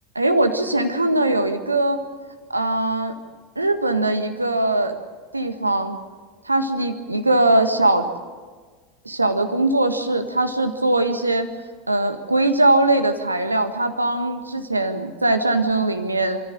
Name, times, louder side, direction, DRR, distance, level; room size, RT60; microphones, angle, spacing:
voice 1, 0.1-2.0 2.5-3.1 3.5-4.9 5.3-6.0 6.4-8.1 9.0-11.5 11.9-16.4, right 2 dB, 85° right, 8 dB, 1.6 m, -21 dB
27.0 x 14.5 x 9.0 m, 1.5 s
figure-of-eight pair, 80°, 0 cm